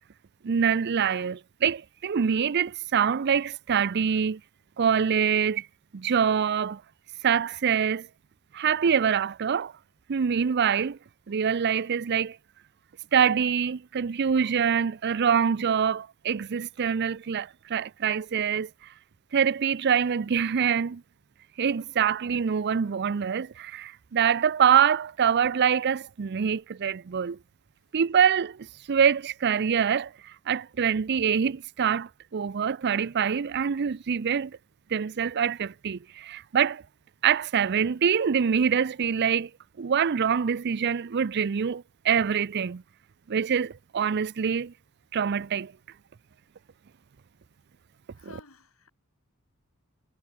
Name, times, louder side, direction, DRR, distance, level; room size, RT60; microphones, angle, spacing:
voice 1, 0.4-4.4 4.8-5.7 5.9-6.8 7.2-8.1 8.5-9.7 10.1-11.0 11.3-12.4 13.1-18.7 19.3-21.0 21.6-27.4 27.9-34.6 34.9-36.8 37.2-39.5 39.8-42.8 43.3-44.7 45.1-45.7, right 7 dB, 50° right, 0.5 m, -25 dB
voice 2, 48.1-48.9, left 3 dB, 75° left, 3.8 m, -51 dB
head